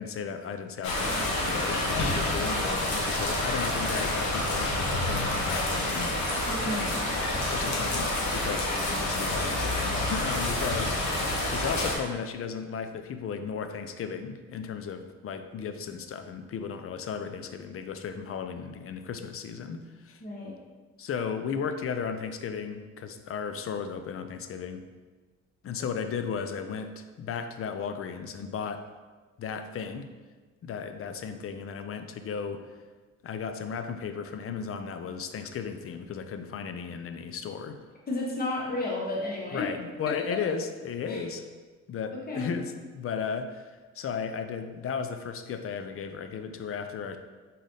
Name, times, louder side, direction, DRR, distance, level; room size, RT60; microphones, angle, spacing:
voice 1, 0.0-6.2 7.5-11.2 11.4-20.2 21.0-24.8 25.6-28.8 29.4-30.1 30.6-32.6 33.2-37.8 39.5-41.4 41.9-47.2, left 6 dB, 50° left, 8 dB, 0.5 m, -35 dB
sound 1, 0.8-12.0, left 1 dB, 70° left, 1.0 m, -28 dB
voice 2, 6.5-7.1 20.2-20.5 38.1-39.6 41.1-41.2 42.3-42.6, left 2 dB, 30° left, -3 dB, 1.1 m, -32 dB
4.1 x 3.8 x 3.3 m, 1.3 s
cardioid pair, 90°, 30 cm